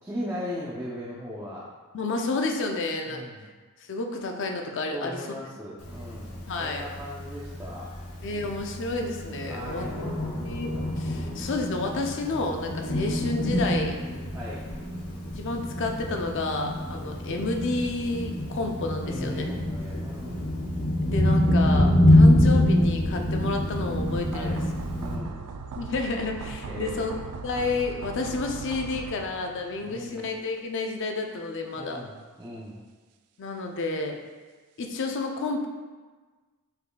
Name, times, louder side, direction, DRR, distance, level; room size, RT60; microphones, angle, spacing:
voice 1, 0.0-1.7 3.1-3.5 4.9-7.9 8.3-8.5 9.5-9.9 14.3-14.6 16.9-17.2 19.1-20.5 24.3-24.6 25.0-25.4 26.6-27.2 29.8-30.2 31.7-32.1 32.4-32.8, equal, 10° right, -7 dB, 0.5 m, -38 dB
voice 2, 1.9-3.2 3.9-5.3 6.5-6.9 8.2-9.9 10.4-14.0 15.4-19.5 21.0-24.6 25.8-32.0 33.4-34.2 34.8-35.7, left 3 dB, 55° left, 3 dB, 0.5 m, -30 dB
Thunder, 5.8-25.2, left 1 dB, 85° left, 0.8 m, -26 dB
sound 1, 24.1-30.1 30.4-30.5, right 4 dB, 90° right, 0.3 m, -39 dB
5.3 x 4.0 x 2.2 m, 1.4 s
head